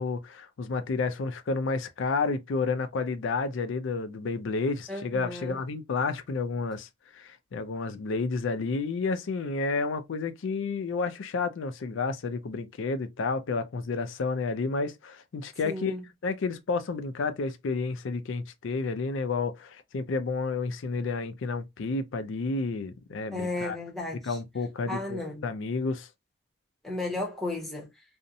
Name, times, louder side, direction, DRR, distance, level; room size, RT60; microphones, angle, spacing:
voice 1, 0.0-6.9 7.1-16.0 16.2-23.8 24.1-26.1, left 4 dB, 60° left, 0.4 m, -30 dB
voice 2, 4.9-5.6 15.6-16.0 23.3-24.4 24.9-25.4 26.8-27.9, left 2 dB, ahead, 0.7 m, -34 dB
2.6 x 2.0 x 2.5 m
head